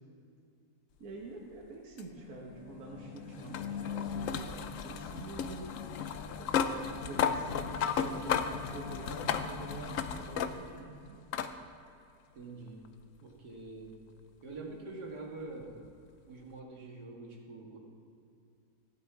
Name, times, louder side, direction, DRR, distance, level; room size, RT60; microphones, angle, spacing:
voice 1, 1.0-5.8 6.3-11.2, right 2 dB, 60° right, -2 dB, 1.7 m, -46 dB
sound 1, 2.0-10.9 11.3-11.5 12.8-12.9 15.8-15.9, left 7 dB, 65° left, 0.9 m, -35 dB
voice 2, 12.3-12.8 13.2-13.9 14.4-15.8 16.3-17.8, right 3 dB, 80° right, -2 dB, 2.6 m, -45 dB
15.5 x 9.7 x 4.8 m, 2.5 s
omnidirectional pair, 1.7 m